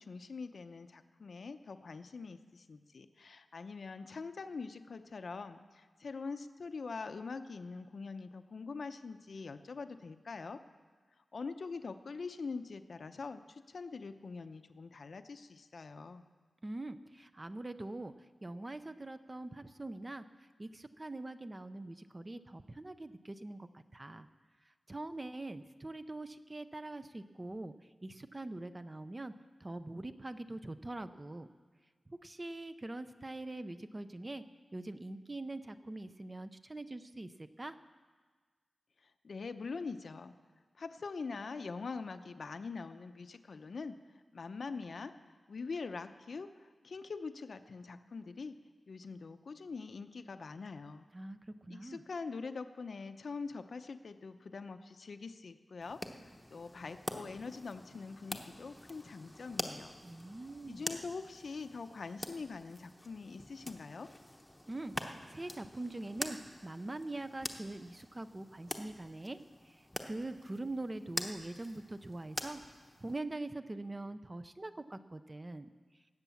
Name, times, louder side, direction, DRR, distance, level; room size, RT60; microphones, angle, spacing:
voice 1, 0.0-10.6 11.3-16.2 39.2-40.3 40.8-44.0 44.3-45.2 45.5-48.6 48.9-51.0 51.7-59.9 60.7-64.1, left 4 dB, 60° left, 9 dB, 0.7 m, -44 dB
voice 2, 16.6-18.1 18.4-24.3 24.9-27.7 28.0-29.3 29.6-31.5 32.1-34.4 34.7-37.8 51.1-52.0 60.0-60.9 64.7-69.4 69.6-75.7, right 2 dB, 25° right, 10 dB, 0.5 m, -43 dB
sound 1, 55.8-73.2, left 1 dB, 10° left, 0.9 m, -46 dB
18.5 x 8.2 x 7.1 m, 1.5 s
wide cardioid pair, 130°, 0 cm